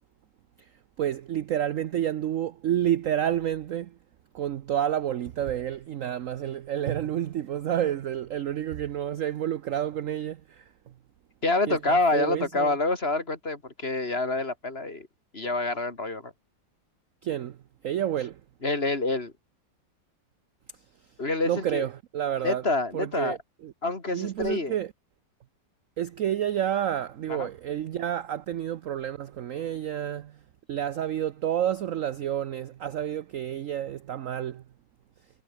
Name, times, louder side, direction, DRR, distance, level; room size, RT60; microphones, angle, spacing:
voice 1, 1.0-3.9 4.3-10.6 11.7-12.7 17.2-17.6 17.8-18.4 21.5-22.6 22.9-23.4 23.6-23.7 24.1-24.9 26.0-30.4 30.7-34.6, right 10 dB, 60° right, 0.8 m, -29 dB
voice 2, 11.4-15.1 15.3-16.3 18.6-19.3 21.2-21.9 22.4-23.4 23.8-24.7 27.3-27.5, left 2 dB, 30° left, 3.0 m, -27 dB
omnidirectional pair, 2.0 m